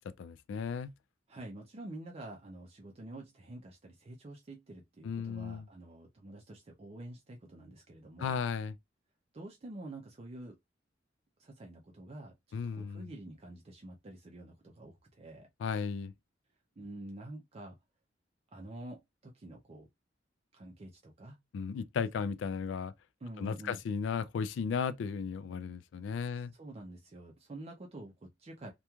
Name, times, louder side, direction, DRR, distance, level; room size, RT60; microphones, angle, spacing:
voice 1, 0.2-0.9 5.0-5.7 8.2-8.8 12.5-13.1 15.6-16.1 21.5-22.9 23.4-26.5, left 6 dB, 75° left, 0.3 m, -35 dB
voice 2, 1.3-8.4 9.3-10.6 11.4-15.5 16.8-17.7 18.5-19.9 20.5-21.4 23.2-23.8 26.5-28.7, right 1 dB, 35° right, 0.4 m, -48 dB
3.0 x 2.2 x 2.2 m
head